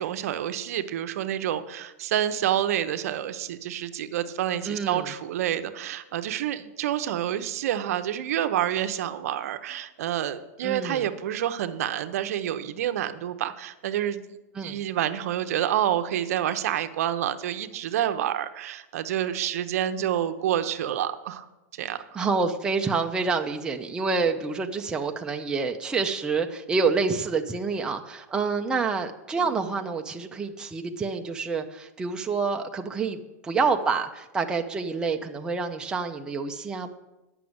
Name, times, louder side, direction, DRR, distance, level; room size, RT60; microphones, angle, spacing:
voice 1, 0.0-14.2 14.6-21.5 21.7-22.2 29.3-29.6, right 11 dB, 65° right, 10 dB, 0.7 m, -28 dB
voice 2, 4.6-5.1 10.6-11.0 14.6-14.8 22.1-36.9, right 4 dB, 10° right, 4 dB, 0.5 m, -27 dB
9.1 x 6.1 x 7.8 m, 1.0 s
supercardioid pair, 145°, 9 cm